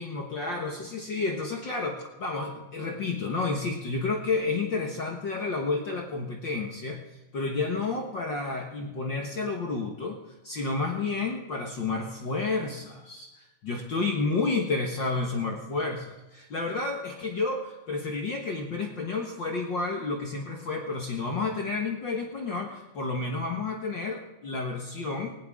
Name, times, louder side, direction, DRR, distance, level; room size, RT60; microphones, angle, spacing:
voice 1, 0.0-7.0 7.3-10.2 10.4-25.3, left 3 dB, 50° left, 1 dB, 1.4 m, -30 dB
18.5 x 18.0 x 3.7 m, 1.0 s
omnidirectional pair, 3.9 m